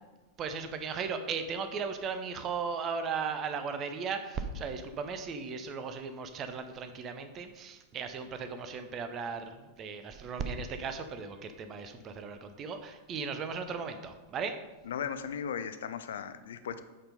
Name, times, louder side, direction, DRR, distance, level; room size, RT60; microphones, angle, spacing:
voice 1, 0.4-14.6, right 5 dB, 30° right, 8 dB, 0.7 m, -36 dB
voice 2, 14.9-16.8, left 7 dB, 60° left, 11 dB, 0.5 m, -37 dB
8.8 x 4.4 x 5.3 m, 1.2 s
figure-of-eight pair, 90°, 0 cm